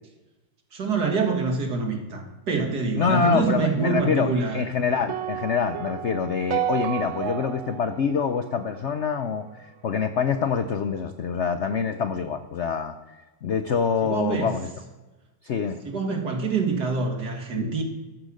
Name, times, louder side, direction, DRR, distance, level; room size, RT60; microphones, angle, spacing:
voice 1, 0.7-4.6 14.0-14.5 15.8-17.8, right 4 dB, 55° right, 2 dB, 2.6 m, -26 dB
voice 2, 3.0-14.7 15.4-15.8, left 6 dB, 65° left, 9 dB, 0.7 m, -26 dB
sound 1, 5.1-9.4, right 10 dB, 85° right, 1.5 m, -32 dB
13.5 x 10.0 x 6.4 m, 1.1 s
omnidirectional pair, 2.0 m